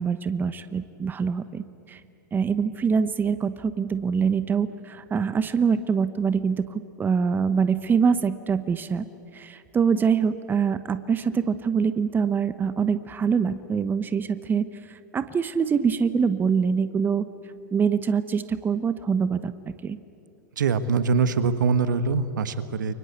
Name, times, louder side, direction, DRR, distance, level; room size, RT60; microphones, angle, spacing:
voice 1, 0.0-2.0 2.3-9.1 9.3-17.2 17.7-20.0, right 6 dB, 20° right, 13 dB, 1.1 m, -24 dB
voice 2, 20.6-22.9, right 5 dB, 75° right, 12 dB, 1.5 m, -23 dB
29.5 x 24.0 x 8.3 m, 2.6 s
hypercardioid pair, 100°, 10 cm